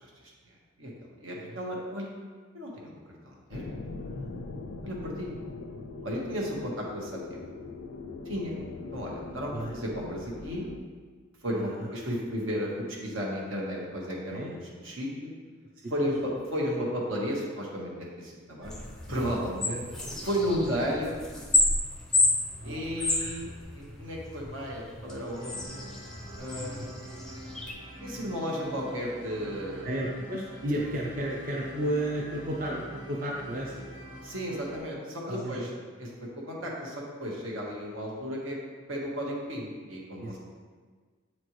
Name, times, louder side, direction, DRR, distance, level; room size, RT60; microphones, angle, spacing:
voice 1, 0.0-0.9 1.2-2.2 2.5-3.7 4.8-5.4 6.0-7.4 8.2-8.6 8.9-10.7 11.4-12.7 13.0-15.3 15.9-18.7 19.1-19.8 20.2-21.2 22.6-23.5 23.7-25.8 26.4-27.2 28.0-29.9 34.2-35.7 36.0-38.6 38.9-40.4, equal, 75° right, -2 dB, 1.3 m, -34 dB
sound 1, 3.5-10.8, left 3 dB, 70° left, 0.4 m, -41 dB
sound 2, 18.6-27.7, left 2 dB, 5° left, 0.5 m, -31 dB
voice 2, 22.5-23.3 26.6-26.9 29.8-34.2 35.3-35.6 40.2-40.4, right 1 dB, 45° right, -3 dB, 0.5 m, -33 dB
sound 3, 25.3-34.8, equal, 20° right, 0.9 m, -45 dB
7.6 x 4.3 x 3.1 m, 1.5 s
head